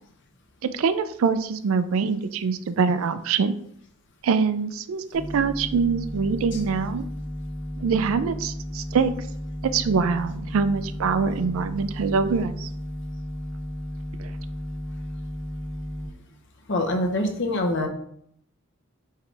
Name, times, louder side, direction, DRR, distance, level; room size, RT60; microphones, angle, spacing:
voice 1, 0.7-3.5 4.2-7.1 7.8-9.1 9.6-12.7 14.2-14.3, right 5 dB, 75° right, 12 dB, 0.4 m, -24 dB
sound 1, 5.1-16.1, equal, 15° left, 1.4 m, -34 dB
voice 2, 16.7-17.9, left 1 dB, 55° left, 3 dB, 0.8 m, -25 dB
4.7 x 3.2 x 3.4 m, 0.69 s
head